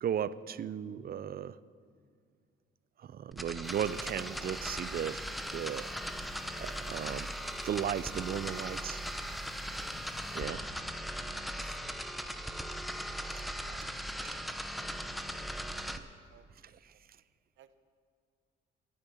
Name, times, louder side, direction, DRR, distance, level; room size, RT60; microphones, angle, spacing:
voice 1, 0.0-1.6 3.0-5.2 5.5-5.9 6.6-7.3 7.6-9.0 10.3-10.6 11.6-11.8 13.8-13.9 14.2-14.4 16.8-16.9, right 9 dB, 50° right, 17 dB, 0.5 m, -36 dB
sound 1, 3.3-16.0, equal, ahead, 0.8 m, -39 dB
sound 2, 3.6-10.5, left 4 dB, 30° left, 1.3 m, -53 dB
voice 2, 13.3-13.9 15.3-16.5 17.6-17.7, right 11 dB, 80° right, 12 dB, 0.8 m, -61 dB
14.0 x 10.5 x 7.1 m, 2.2 s
cardioid pair, 90°, 20 cm